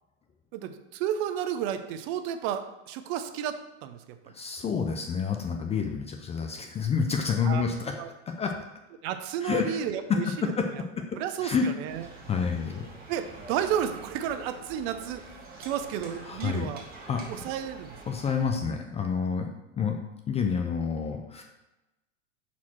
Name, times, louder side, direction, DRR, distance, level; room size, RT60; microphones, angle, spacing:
voice 1, 0.5-4.2 7.4-7.6 7.9-8.1 9.0-10.3 11.2-12.1 13.1-15.3 15.6-16.8 17.3-17.9, right 9 dB, 55° right, 9 dB, 0.7 m, -32 dB
voice 2, 4.3-7.9 8.3-8.6 9.4-9.8 10.1-11.1 11.4-11.7 12.3-12.9 16.3-16.7 17.1-17.2 18.1-20.0 20.3-21.4, left 6 dB, 15° left, 4 dB, 0.4 m, -28 dB
sound 1, 11.9-18.5, right 3 dB, 25° right, 1.7 m, -46 dB
6.0 x 4.3 x 4.3 m, 0.99 s
hypercardioid pair, 115°, 38 cm